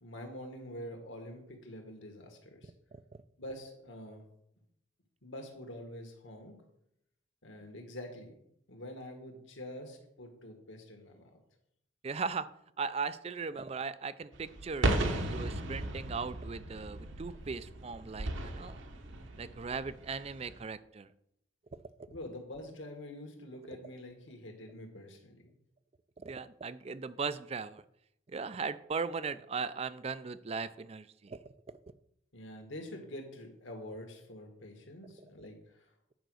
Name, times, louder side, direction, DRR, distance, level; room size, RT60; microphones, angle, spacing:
voice 1, 0.0-2.7 3.4-4.2 5.2-6.5 7.4-8.4 8.7-11.3 22.1-25.4 32.3-35.9, left 1 dB, 65° left, 3 dB, 1.8 m, -46 dB
voice 2, 12.0-12.5 12.8-18.8 19.4-21.1 26.2-27.8 28.3-31.4, right 5 dB, 30° right, 15 dB, 0.3 m, -38 dB
sound 1, 14.3-20.6, right 1 dB, 65° right, 1.1 m, -36 dB
9.1 x 5.1 x 6.3 m, 0.76 s
head